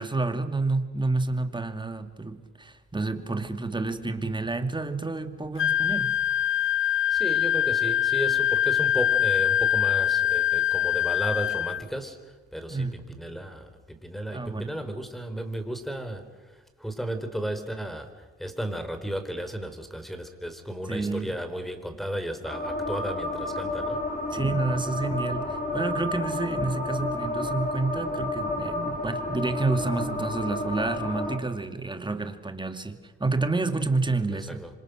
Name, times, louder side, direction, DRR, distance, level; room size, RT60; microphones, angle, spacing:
voice 1, 0.0-6.2 12.7-13.0 14.3-14.7 20.9-21.3 24.3-34.6, right 3 dB, 15° right, 7 dB, 2.6 m, -29 dB
Wind instrument woodwind instrument, 5.6-11.8, left 10 dB, 45° left, 0.9 m, -24 dB
voice 2, 7.1-24.0 34.3-34.7, right 1 dB, ahead, 8 dB, 4.3 m, -34 dB
sound 1, 22.4-31.4, left 2 dB, 25° left, 4.1 m, -31 dB
27.5 x 25.5 x 6.6 m, 1.3 s
cardioid pair, 90°, 30 cm